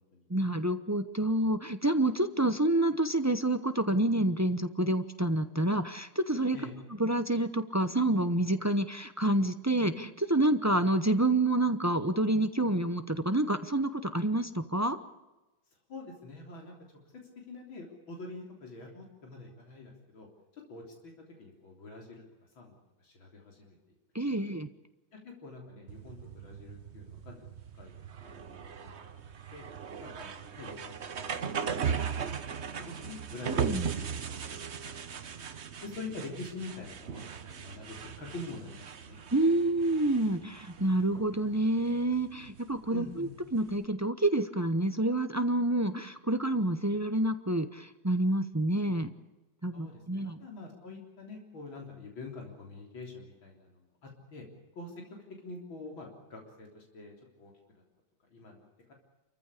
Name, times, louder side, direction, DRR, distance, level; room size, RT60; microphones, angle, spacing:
voice 1, 0.3-6.6 6.9-15.0 24.1-24.7 33.5-33.9 39.3-49.1 49.6-50.4, right 1 dB, 25° right, 10 dB, 0.3 m, -28 dB
voice 2, 15.9-16.7 17.5-20.3 20.7-21.1 21.4-22.2 22.6-22.7 23.0-23.8 24.3-24.4 25.2-27.4 27.7-27.9 28.2-29.2 29.5-29.7 30.0-32.3 32.6-34.1 34.5-35.1 35.5-39.2 42.9-43.3 49.7-54.5 54.8-54.9 55.4-57.5 58.3-58.9, left 2 dB, 85° left, 1 dB, 4.3 m, -46 dB
sound 1, 25.9-43.8, right 7 dB, 45° right, 1.1 m, -38 dB
28.5 x 15.0 x 8.4 m, 1.1 s
omnidirectional pair, 2.1 m